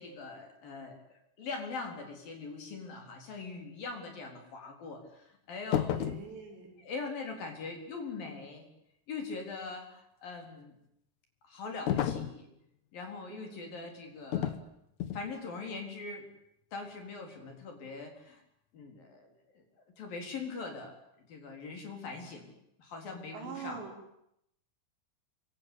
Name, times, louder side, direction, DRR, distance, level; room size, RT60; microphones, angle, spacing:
voice 1, 0.0-6.0 6.8-8.6 9.1-10.8 11.5-12.5 12.9-14.6 15.1-16.3 16.7-18.4 18.7-19.6 20.0-21.0 21.3-23.8, left 4 dB, 50° left, 3 dB, 5.5 m, -42 dB
sound 1, 5.7-6.3 11.9-12.4 14.3-14.6 15.0-15.3, left 10 dB, 90° left, 1.6 m, -31 dB
voice 2, 5.9-6.8 13.3-13.7 23.3-24.0, right 6 dB, 65° right, 1 dB, 7.3 m, -44 dB
27.5 x 24.5 x 8.7 m, 0.78 s
omnidirectional pair, 5.5 m